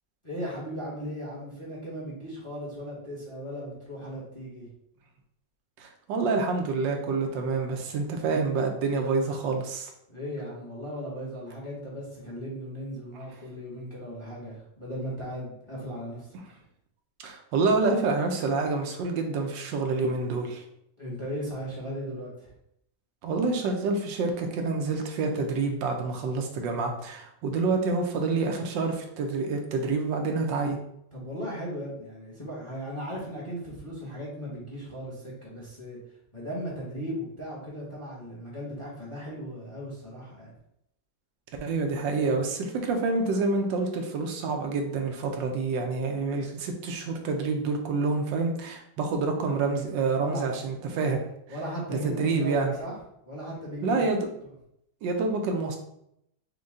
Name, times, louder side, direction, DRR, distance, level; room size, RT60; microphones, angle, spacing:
voice 1, 0.2-4.7 10.1-16.3 21.0-22.5 31.1-36.0 36.3-40.5 50.2-50.5 51.5-53.0 53.2-54.0, equal, 20° left, -5 dB, 0.9 m, -37 dB
voice 2, 5.8-9.9 17.2-20.6 23.2-30.8 41.6-51.2 51.9-52.7 53.8-54.3 55.0-55.8, right 3 dB, 85° right, 3 dB, 1.4 m, -27 dB
5.2 x 2.2 x 3.6 m, 0.76 s
omnidirectional pair, 1.9 m